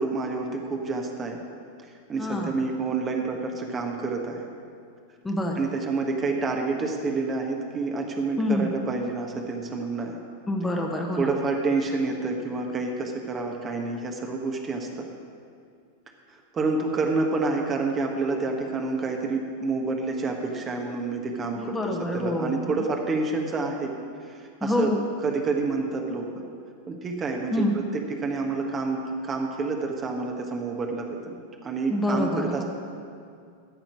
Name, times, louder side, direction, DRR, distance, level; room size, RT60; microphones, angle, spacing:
voice 1, 0.0-1.4 2.1-4.5 5.6-10.2 11.2-15.1 16.5-23.9 24.3-26.4 26.9-32.6, right 3 dB, 25° right, 2 dB, 1.3 m, -28 dB
voice 2, 2.2-2.5 5.2-5.7 8.4-8.7 10.5-11.3 21.6-22.7 24.6-25.0 27.5-27.8 31.9-32.6, left 1 dB, 10° left, 1 dB, 1.4 m, -26 dB
14.0 x 5.9 x 8.3 m, 2.3 s
figure-of-eight pair, 90°, 0 cm